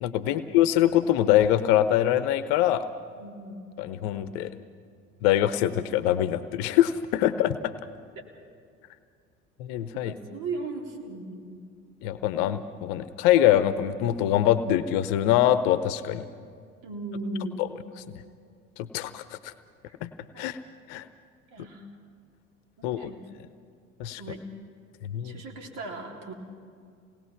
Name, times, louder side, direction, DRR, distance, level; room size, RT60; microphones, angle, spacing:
voice 1, 0.0-2.8 3.8-4.5 5.2-7.6 9.6-10.1 12.0-16.3 17.6-17.7 18.8-19.5 20.0-20.1 20.4-20.6 20.9-21.0 22.8-23.1 24.0-24.2 25.0-25.4, left 12 dB, 60° left, 12 dB, 0.8 m, -24 dB
voice 2, 3.2-3.6 10.0-11.6 16.8-17.7 20.3-20.4 21.5-21.9 22.8-23.2 24.2-24.4 25.2-26.3, right 2 dB, 55° right, 1 dB, 3.6 m, -37 dB
28.0 x 19.5 x 5.8 m, 2.2 s
hypercardioid pair, 65°, 38 cm